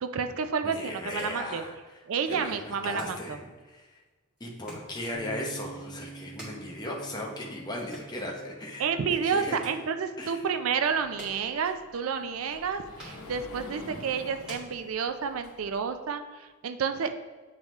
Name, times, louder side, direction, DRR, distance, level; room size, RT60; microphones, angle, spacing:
voice 1, 0.0-1.6 2.1-3.4 8.8-17.1, right 6 dB, 75° right, 8 dB, 0.4 m, -30 dB
voice 2, 0.6-1.7 2.3-3.9 4.4-8.9 9.2-9.6 10.2-10.4, left 1 dB, 20° left, -1 dB, 0.8 m, -37 dB
sound 1, 0.9-15.4, equal, 5° right, 1.9 m, -52 dB
Bass guitar, 5.1-11.4, right 4 dB, 30° right, 0.9 m, -48 dB
Sliding door, 10.9-15.9, left 2 dB, 80° left, 0.8 m, -48 dB
9.0 x 3.6 x 3.1 m, 1.3 s
head